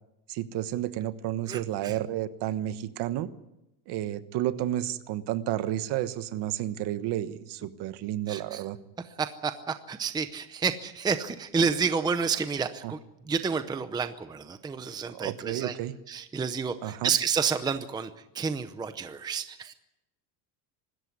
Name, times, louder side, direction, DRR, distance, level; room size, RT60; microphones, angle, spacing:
voice 1, 0.3-3.3 3.9-8.8 12.8-12.9 15.0-15.9 16.8-17.1, right 13 dB, 55° right, 13 dB, 1.3 m, -31 dB
voice 2, 1.5-1.9 8.3-8.6 9.2-13.0 13.3-15.8 16.1-18.1 18.3-19.7, right 6 dB, 10° right, 10 dB, 0.7 m, -30 dB
24.5 x 13.0 x 9.6 m, 0.93 s
cardioid pair, 160°, 49 cm